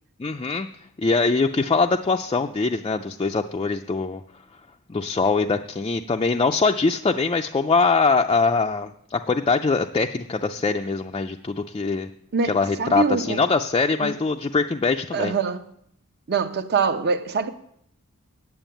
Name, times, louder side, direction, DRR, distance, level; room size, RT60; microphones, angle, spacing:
voice 1, 0.2-0.7 1.0-4.2 4.9-12.1 12.5-15.3, left 4 dB, 25° left, 0.4 m, -22 dB
voice 2, 12.3-13.4 14.0-14.2 15.1-15.7 16.3-17.5, right 5 dB, 50° right, 0.8 m, -24 dB
9.0 x 7.6 x 9.0 m
head